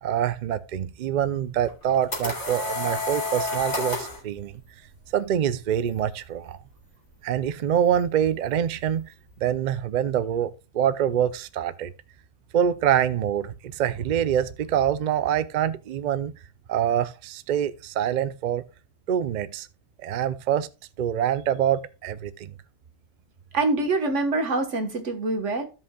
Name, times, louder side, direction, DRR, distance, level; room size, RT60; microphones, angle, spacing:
voice 1, 0.0-4.6 5.1-6.6 7.2-11.9 12.5-16.3 16.7-18.6 19.1-19.7 20.0-20.7 21.0-22.5, right 9 dB, 55° right, 0.5 m, -25 dB
sound 1, 1.7-4.2, left 2 dB, 75° left, 2.8 m, -29 dB
voice 2, 23.5-25.6, right 3 dB, 90° right, 1.7 m, -25 dB
15.5 x 5.4 x 2.3 m
omnidirectional pair, 1.2 m